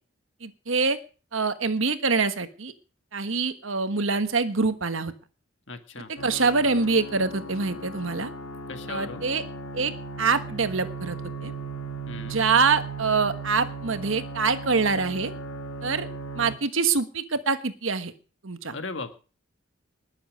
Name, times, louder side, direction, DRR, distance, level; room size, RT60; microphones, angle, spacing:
voice 1, 0.4-1.0 1.3-2.7 3.1-5.1 6.2-8.3 8.9-9.4 9.7-9.9 10.2-11.2 11.4-11.5 12.2-15.3 15.8-16.1 16.4-18.1 18.4-18.7, right 4 dB, 70° right, 10 dB, 1.3 m, -25 dB
voice 2, 5.7-6.1 8.7-9.2 12.1-12.4 18.7-19.1, left 3 dB, 60° left, 8 dB, 1.9 m, -37 dB
sound 1, 6.2-16.6, right 3 dB, 85° left, 1.9 m, -37 dB
20.5 x 7.3 x 6.2 m, 0.37 s
head